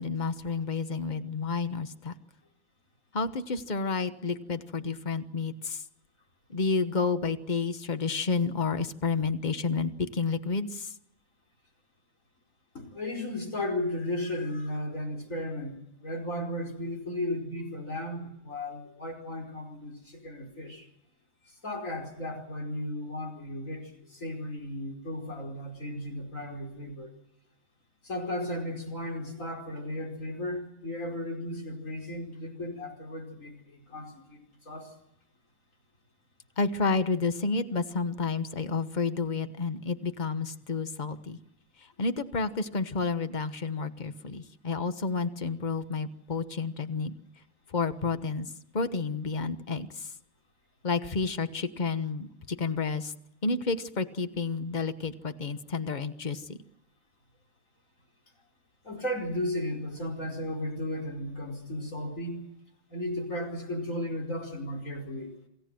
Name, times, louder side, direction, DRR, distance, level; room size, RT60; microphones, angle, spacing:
voice 1, 0.0-2.1 3.1-5.8 6.5-10.9 36.6-41.4 42.0-47.1 47.7-50.1 50.8-53.1 53.4-56.6, left 4 dB, 35° left, 10 dB, 1.3 m, -30 dB
voice 2, 12.7-20.9 21.5-27.1 28.0-34.9 58.8-62.4 62.9-65.3, left 1 dB, 70° left, 1 dB, 5.4 m, -35 dB
28.0 x 17.0 x 7.7 m, 0.81 s
omnidirectional pair, 1.4 m